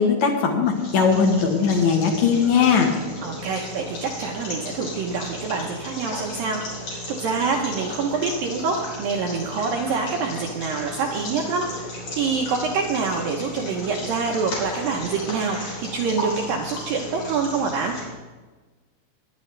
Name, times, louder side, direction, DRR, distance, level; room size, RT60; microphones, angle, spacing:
voice 1, 0.0-2.9, left 6 dB, 75° left, 1 dB, 1.7 m, -19 dB
sound 1, 0.6-18.0, left 1 dB, 50° left, 5.0 m, -35 dB
voice 2, 3.2-11.7 12.1-17.9, right 4 dB, 75° right, 1 dB, 2.2 m, -26 dB
19.0 x 10.5 x 3.3 m, 1.3 s
omnidirectional pair, 5.0 m